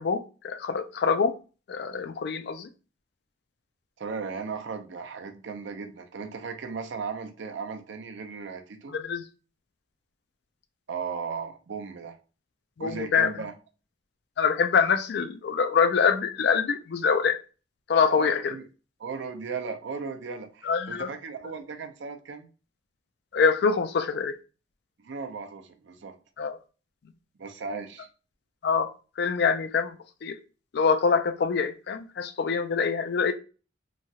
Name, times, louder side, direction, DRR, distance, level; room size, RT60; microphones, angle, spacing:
voice 1, 0.0-1.3 1.7-2.7 8.9-9.2 12.8-13.3 14.4-17.4 17.9-18.6 20.6-21.1 23.3-24.4 26.4-26.6 28.6-28.9 29.2-29.9 30.2-30.4 30.7-33.3, left 5 dB, 60° left, 0.4 m, -25 dB
voice 2, 4.0-8.9 10.9-12.2 12.8-13.5 18.1-18.6 19.0-22.5 25.0-26.1 27.4-28.1, right 5 dB, 75° right, 0.5 m, -36 dB
3.0 x 2.3 x 2.7 m
head